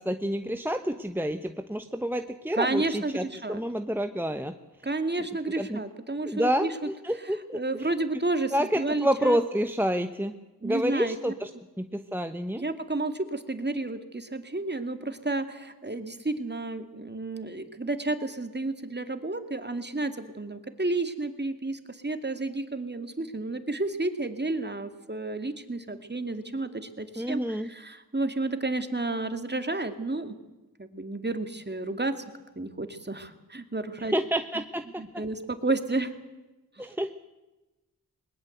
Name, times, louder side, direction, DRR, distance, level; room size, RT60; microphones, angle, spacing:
voice 1, 0.0-4.5 5.6-5.8 6.3-7.6 8.5-10.3 10.6-11.5 11.8-12.6 27.2-27.7 34.0-35.2 36.8-37.1, equal, 5° right, 8 dB, 1.1 m, -28 dB
voice 2, 2.5-3.6 4.8-6.9 7.2-9.4 10.6-11.3 12.6-30.3 30.8-32.1 32.6-34.1 35.0-36.1 36.8-36.9, right 2 dB, 30° right, 8 dB, 2.3 m, -31 dB
20.5 x 20.5 x 8.0 m, 1.1 s
cardioid pair, 45°, 36 cm